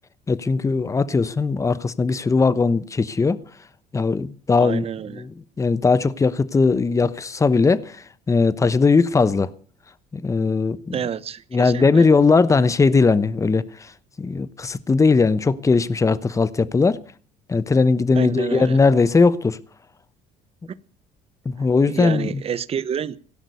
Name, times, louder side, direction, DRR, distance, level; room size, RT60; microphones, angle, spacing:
voice 1, 0.3-3.4 3.9-4.8 5.2-5.3 5.6-9.5 10.1-11.0 11.5-13.9 14.2-17.0 17.5-19.6 21.4-22.3, left 4 dB, 20° left, 1.0 m, -19 dB
voice 2, 4.6-5.2 10.9-12.0 18.1-18.8 21.9-23.2, right 8 dB, 40° right, 0.9 m, -28 dB
16.5 x 11.0 x 6.8 m
cardioid pair, 105°, 16 cm